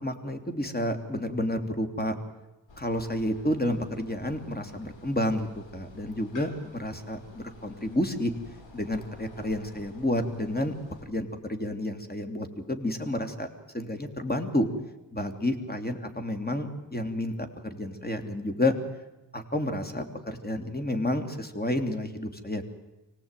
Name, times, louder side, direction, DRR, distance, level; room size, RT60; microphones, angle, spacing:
voice 1, 0.0-2.1 2.8-8.3 8.7-10.7 11.1-13.5 13.7-14.7 15.1-18.7 19.3-22.6, left 1 dB, 20° left, 6 dB, 3.2 m, -30 dB
sound 1, 2.7-11.1, left 2 dB, 80° left, 3.9 m, -50 dB
25.0 x 18.0 x 9.2 m, 1.0 s
cardioid pair, 45°, 44 cm